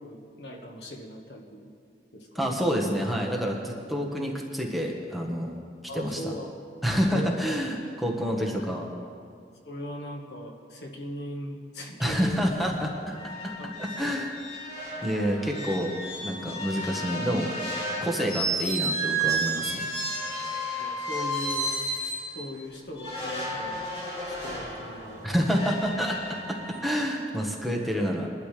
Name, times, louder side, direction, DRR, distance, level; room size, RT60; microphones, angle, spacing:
voice 1, 0.0-1.7 2.1-2.5 5.9-6.5 7.1-7.5 8.3-8.7 9.6-12.4 13.6-14.2 20.4-21.7 22.3-23.8 24.3-25.6, equal, 70° left, 1 dB, 1.5 m, -39 dB
voice 2, 2.3-5.5 5.9-6.2 6.8-8.9 12.0-13.1 13.4-13.5 13.8-14.3 15.0-15.9 16.2-17.5 18.0-19.8 25.2-26.2 26.5-28.3, equal, ahead, -2 dB, 1.4 m, -28 dB
sound 1, 13.1-22.3 23.0-27.0, right 1 dB, 30° left, 3.2 m, -32 dB
22.0 x 12.0 x 3.4 m, 2.2 s
head